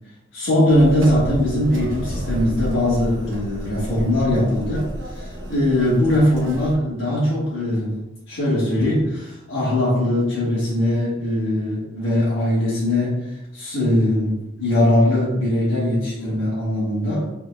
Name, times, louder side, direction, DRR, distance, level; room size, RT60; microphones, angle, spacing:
voice 1, 0.3-7.9 8.3-17.3, left 1 dB, 70° left, -9 dB, 1.4 m, -20 dB
sound 1, 0.7-6.8, equal, 70° right, 0.7 m, -31 dB
5.6 x 3.6 x 2.2 m, 0.91 s
head